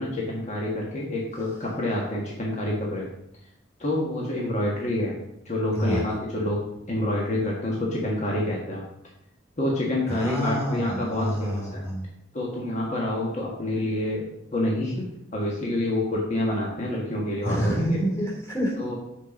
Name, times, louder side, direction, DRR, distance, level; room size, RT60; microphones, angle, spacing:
voice 1, 0.0-3.1 3.8-5.2 5.4-6.6 6.9-8.9 9.6-11.8 12.3-15.0 15.3-17.7 18.8-18.9, left 1 dB, 35° left, -3 dB, 1.5 m, -27 dB
voice 2, 5.7-6.0 10.1-12.0 17.4-18.8, equal, 15° left, -3 dB, 2.8 m, -27 dB
6.6 x 5.1 x 6.0 m, 0.79 s
head